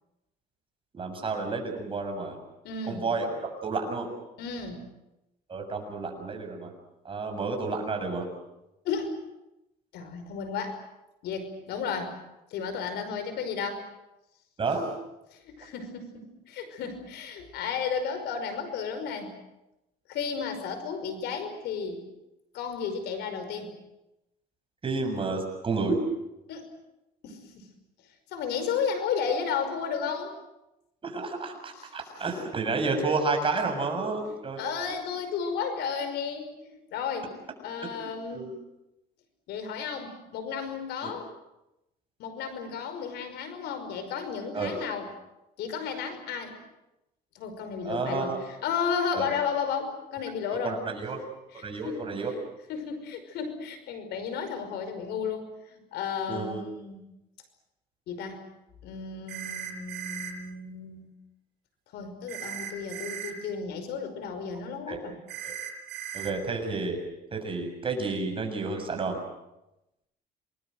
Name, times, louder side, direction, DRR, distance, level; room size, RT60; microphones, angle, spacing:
voice 1, 0.9-2.4 2.8-4.1 5.5-6.7 7.0-8.3 14.6-14.9 24.8-26.0 31.0-34.6 37.8-38.5 41.0-41.2 44.5-44.8 47.8-48.4 49.1-49.3 50.6-51.2 51.6-52.3 56.3-56.6 64.9-65.0 65.4-65.5 66.1-67.0 67.3-69.2, right 3 dB, 30° right, 4 dB, 7.2 m, -31 dB
voice 2, 2.6-3.1 4.4-4.8 8.8-9.1 9.9-10.8 11.2-12.1 12.5-13.9 15.3-19.3 20.1-22.1 22.5-23.7 26.5-26.7 27.2-27.7 28.3-30.3 31.8-31.9 32.2-32.3 34.6-37.3 37.6-38.5 39.5-41.3 42.2-45.1 45.6-46.6 47.3-48.4 48.6-50.7 51.8-52.1 52.7-57.0 58.1-58.4 58.8-61.1 61.9-65.1, left 6 dB, 80° left, 9 dB, 5.4 m, -33 dB
sound 1, 59.3-60.3 62.3-63.3 65.3-66.3, right 9 dB, 85° right, 7.0 m, -37 dB
28.0 x 21.0 x 7.9 m, 0.92 s
cardioid pair, 110°, 17 cm